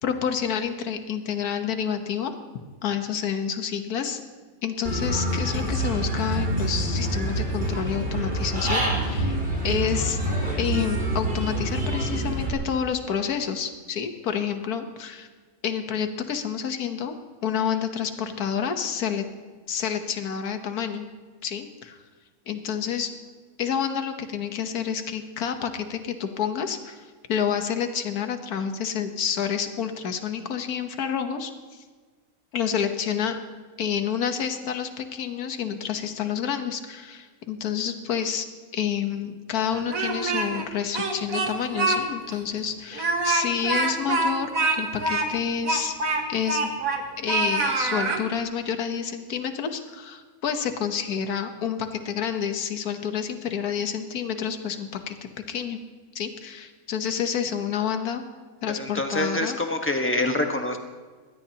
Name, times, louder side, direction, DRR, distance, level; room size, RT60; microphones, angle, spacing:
voice 1, 0.0-2.3 2.8-4.2 4.6-9.4 9.6-10.2 10.6-15.3 15.6-17.1 17.4-19.2 19.7-21.0 21.4-22.0 22.5-23.1 23.6-27.0 27.3-31.8 32.5-33.4 33.8-38.5 38.7-46.0 46.3-46.7 47.2-55.2 55.5-55.8 56.1-58.2 58.6-59.6, left 8 dB, 75° left, 7 dB, 1.6 m, -29 dB
Human voice / Bird, 4.8-12.5, right 1 dB, 35° right, 4.5 m, -26 dB
Speech, 39.7-40.6 40.9-42.0 42.3-42.4 42.9-47.0 47.3-48.2, right 3 dB, 65° right, 2.1 m, -25 dB
voice 2, 58.7-60.8, left 1 dB, 10° left, 4 dB, 1.2 m, -26 dB
22.5 x 17.0 x 2.9 m, 1.4 s
omnidirectional pair, 1.6 m